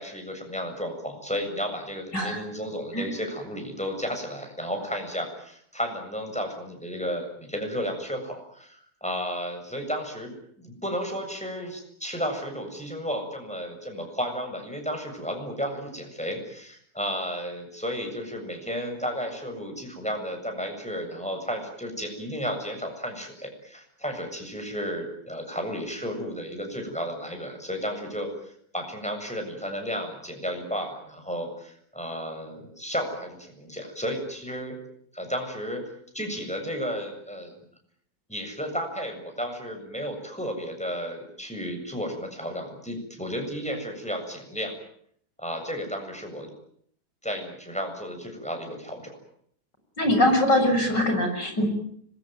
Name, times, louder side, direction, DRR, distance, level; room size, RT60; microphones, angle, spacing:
voice 1, 0.0-10.3 10.6-34.8 35.1-35.8 36.1-37.5 38.3-44.7 45.4-46.5 47.2-49.2, equal, 5° left, 4 dB, 7.4 m, -33 dB
voice 2, 50.0-51.7, left 1 dB, 75° left, 5 dB, 7.6 m, -22 dB
26.0 x 22.5 x 9.3 m, 0.66 s
omnidirectional pair, 1.9 m